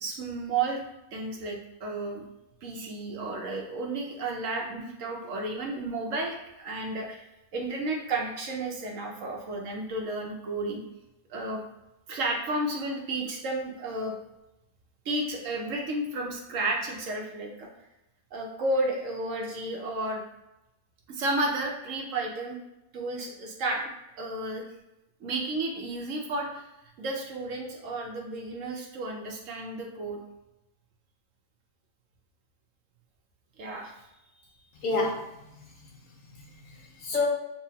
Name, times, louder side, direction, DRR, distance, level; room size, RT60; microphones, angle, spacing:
voice 1, 0.0-0.8 1.1-2.2 2.6-7.2 7.5-10.8 11.3-11.6 12.1-14.1 15.1-17.7 18.3-20.2 21.1-22.6 22.9-23.8 24.2-24.7 25.2-26.7 27.0-30.2 33.6-34.0, right 2 dB, 65° right, 1 dB, 1.0 m, -32 dB
voice 2, 34.7-37.3, left 3 dB, 65° left, -1 dB, 1.2 m, -32 dB
6.8 x 2.3 x 2.8 m, 0.91 s
omnidirectional pair, 1.6 m